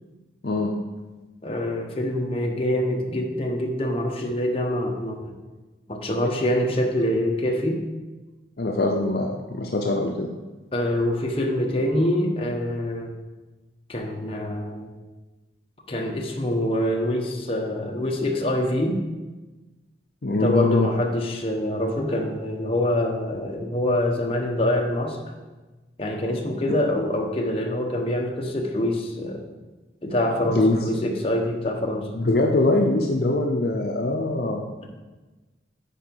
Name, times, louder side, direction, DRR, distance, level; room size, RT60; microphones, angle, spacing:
voice 1, 1.4-5.3 5.9-7.8 10.7-13.1 13.9-14.9 15.9-19.0 20.3-25.2 26.0-29.4 30.0-32.1, left 1 dB, 30° left, 1 dB, 1.0 m, -25 dB
voice 2, 8.6-10.3 20.2-20.9 30.5-30.8 32.1-34.6, left 2 dB, 60° left, 1 dB, 0.7 m, -22 dB
9.0 x 4.7 x 4.6 m, 1.2 s
head